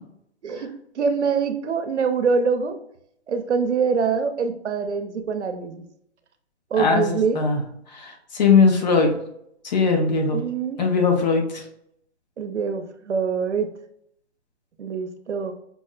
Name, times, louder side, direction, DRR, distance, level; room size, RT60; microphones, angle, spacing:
voice 1, 0.4-2.8 3.3-5.9 6.7-7.4 10.3-10.8 12.4-13.7 14.8-15.5, right 5 dB, 85° right, 7 dB, 0.7 m, -24 dB
voice 2, 6.8-7.6 8.0-9.1 9.6-10.4 10.8-11.4, left 5 dB, 40° left, 3 dB, 0.7 m, -19 dB
5.1 x 2.1 x 2.4 m, 0.72 s
hypercardioid pair, 145°, 34 cm